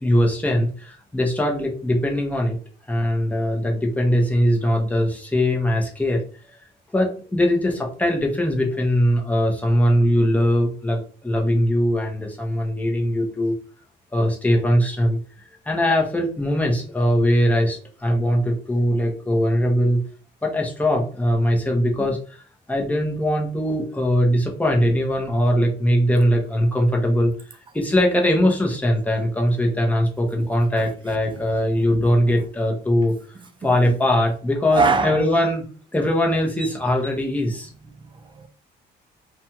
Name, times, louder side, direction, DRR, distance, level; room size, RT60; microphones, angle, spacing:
voice 1, 0.0-2.6 2.9-6.2 6.9-13.5 14.1-15.2 15.7-20.0 20.4-22.4 22.7-27.3 27.7-33.1 33.6-35.6 35.9-37.7, equal, 5° left, 0.8 m, -21 dB
voice 2, 30.8-31.5 33.6-33.9 34.7-35.2 37.9-38.5, right 4 dB, 25° right, 0.5 m, -25 dB
2.5 x 2.3 x 2.9 m
cardioid pair, 90°, 20 cm